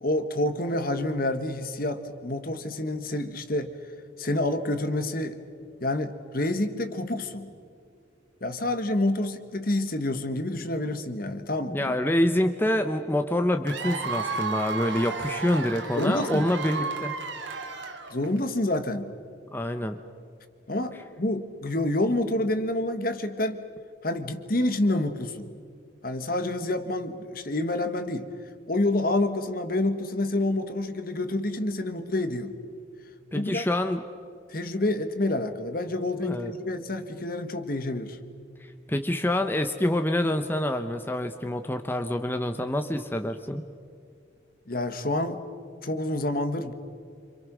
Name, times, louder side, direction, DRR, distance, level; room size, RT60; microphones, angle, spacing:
voice 1, 0.0-3.7 4.2-5.4 5.8-7.5 8.4-12.0 15.9-16.5 18.1-19.1 20.7-23.6 24.0-25.5 26.0-28.3 28.7-32.5 33.3-33.7 34.5-38.2 44.7-45.4 45.8-46.7, left 1 dB, 50° left, 9 dB, 1.6 m, -28 dB
voice 2, 11.7-17.1 19.5-20.0 33.3-34.0 36.2-36.5 38.6-43.6, left 1 dB, 10° left, 6 dB, 0.8 m, -26 dB
Cheering / Applause / Crowd, 13.7-18.4, right 4 dB, 70° right, 2.5 m, -33 dB
27.5 x 26.5 x 6.2 m, 2.3 s
head